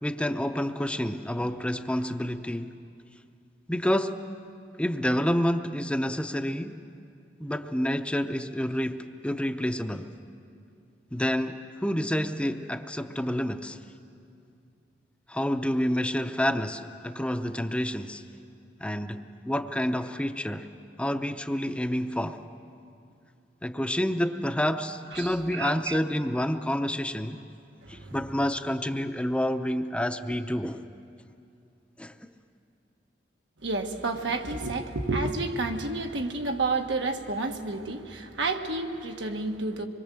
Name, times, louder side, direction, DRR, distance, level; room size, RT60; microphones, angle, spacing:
voice 1, 0.0-2.7 3.7-4.1 4.8-6.8 7.4-10.1 11.1-13.8 15.3-18.2 18.8-20.7 21.0-22.4 23.6-27.4 27.9-30.8 32.0-32.1, equal, 5° left, 8 dB, 0.6 m, -28 dB
voice 2, 25.1-26.0 27.8-28.2 33.6-39.8, right 3 dB, 90° right, 4 dB, 1.5 m, -30 dB
25.5 x 22.5 x 7.7 m, 2.5 s
head